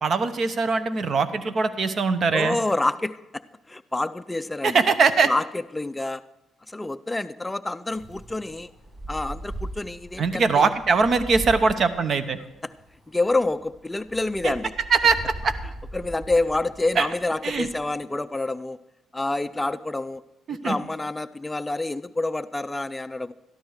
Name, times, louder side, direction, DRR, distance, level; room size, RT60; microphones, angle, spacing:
voice 1, 0.0-2.6 4.6-5.3 10.2-12.4 14.4-14.5 14.9-15.5 17.0-17.1 17.4-17.7 20.5-20.8, right 4 dB, 50° right, 12 dB, 0.9 m, -21 dB
voice 2, 2.3-3.4 3.7-4.8 5.2-5.4 5.7-6.2 6.7-8.7 9.1-10.7 12.6-12.7 13.1-14.7 15.9-18.8 19.1-20.2 20.5-23.3, left 2 dB, 15° left, 13 dB, 0.3 m, -27 dB
Wind, 7.9-17.8, right 1 dB, 35° right, 5.3 m, -39 dB
13.0 x 12.0 x 4.7 m, 0.90 s
cardioid pair, 90°, 0 cm